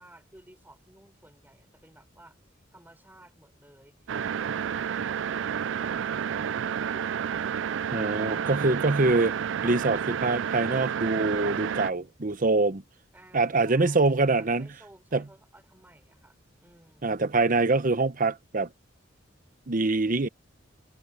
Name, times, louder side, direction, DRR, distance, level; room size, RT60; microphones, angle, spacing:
voice 1, 0.0-2.4 2.7-4.7 13.1-17.2, right 1 dB, 10° right, 6.5 m, -55 dB
sound 1, 4.1-11.9, right 8 dB, 70° right, 0.4 m, -30 dB
voice 2, 7.9-9.4 9.6-12.8 13.3-14.7 15.1-15.2 17.0-18.7 19.7-20.3, right 3 dB, 45° right, 0.9 m, -24 dB
head